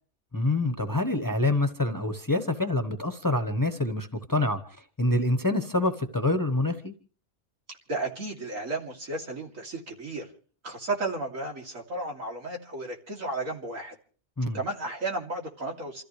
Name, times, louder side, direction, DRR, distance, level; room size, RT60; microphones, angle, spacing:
voice 1, 0.3-4.6 5.0-6.9 14.4-14.6, left 2 dB, 15° left, 5 dB, 1.2 m, -26 dB
voice 2, 7.9-10.3 10.6-13.9 14.5-16.0, right 2 dB, 90° right, 1 dB, 3.3 m, -33 dB
28.0 x 14.5 x 3.3 m, 0.42 s
omnidirectional pair, 1.3 m